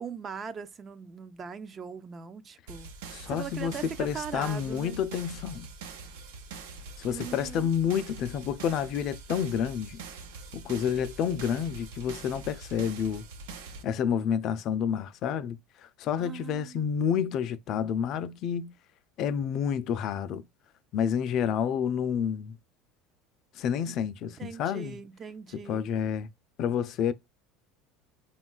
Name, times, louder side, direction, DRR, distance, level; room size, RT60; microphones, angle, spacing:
voice 1, 0.0-2.9 3.3-5.0 7.1-7.7 16.2-16.9 24.4-25.9, right 6 dB, 30° right, 0.3 m, -40 dB
sound 1, 2.7-13.8, right 4 dB, 90° right, 0.5 m, -44 dB
voice 2, 3.1-5.7 7.0-10.0 10.5-13.3 13.8-18.7 19.2-20.5 20.9-22.6 23.6-25.0 25.5-26.3 26.6-27.1, left 8 dB, 50° left, 0.3 m, -29 dB
3.4 x 2.2 x 2.2 m
supercardioid pair, 120°, 0 cm